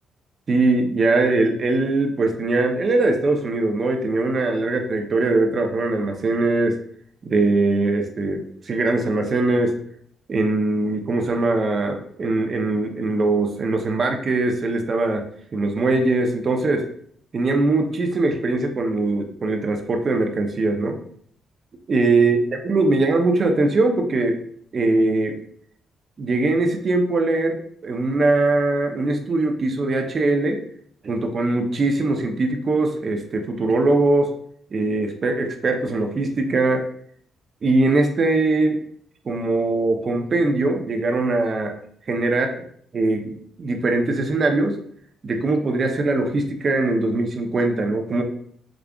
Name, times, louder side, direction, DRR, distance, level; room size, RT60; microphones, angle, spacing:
voice 1, 0.5-6.8 7.2-9.8 10.3-15.2 15.5-16.9 17.3-21.0 21.9-24.4 24.7-25.4 26.2-30.6 31.0-34.3 34.7-36.9 37.6-38.8 39.3-41.8 42.1-42.5 42.9-44.8 45.2-48.2, right 2 dB, 45° right, 4 dB, 0.6 m, -21 dB
4.9 x 2.4 x 2.3 m, 0.62 s
cardioid pair, 90°, 0 cm